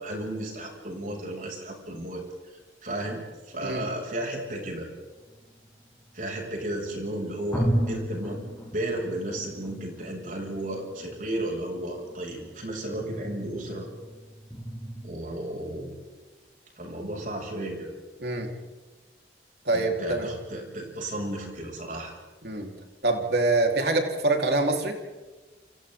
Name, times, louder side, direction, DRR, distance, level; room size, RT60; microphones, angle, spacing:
voice 1, 0.0-2.2 2.8-3.2 3.5-4.9 6.1-8.4 8.7-13.9 15.0-15.9 16.8-17.9 19.7-22.1, right 1 dB, 50° right, 0 dB, 7.3 m, -33 dB
sound 1, 5.1-6.5 7.0-7.1 7.5-15.1, equal, 10° left, 5.0 m, -35 dB
voice 2, 19.6-20.3 22.4-22.7 23.0-25.0, right 2 dB, 65° right, 2 dB, 4.5 m, -25 dB
29.5 x 29.0 x 4.0 m, 1.3 s
head